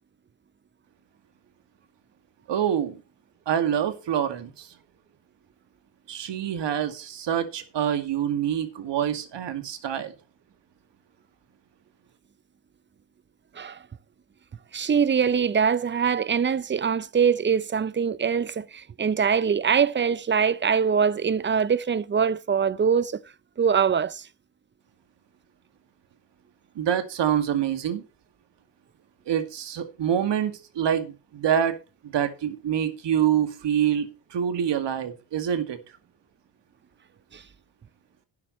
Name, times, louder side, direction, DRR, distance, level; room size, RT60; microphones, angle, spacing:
voice 1, 2.5-3.0 3.5-4.7 6.1-10.1 26.8-28.0 29.3-31.8 32.0-35.8, right 9 dB, 60° right, 2.3 m, -26 dB
voice 2, 14.7-23.2 23.6-24.3 37.3-37.4, right 6 dB, 25° right, 0.7 m, -23 dB
12.0 x 10.0 x 3.2 m
supercardioid pair, 75°, 49 cm